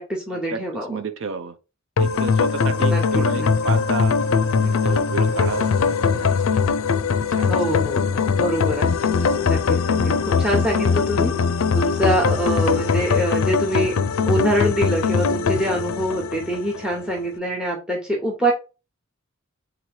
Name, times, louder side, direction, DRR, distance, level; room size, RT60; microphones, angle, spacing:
voice 1, 0.0-1.0 2.9-3.0 3.3-3.5 7.5-9.0 9.5-11.3 11.7-13.9 14.3-18.5, right 1 dB, 5° right, 0.9 m, -24 dB
voice 2, 0.9-1.5 2.0-4.2 4.6-6.4 7.2-7.6, right 4 dB, 65° right, 0.6 m, -31 dB
sound 1, 2.0-17.0, left 5 dB, 80° left, 0.5 m, -21 dB
3.9 x 3.1 x 4.3 m
head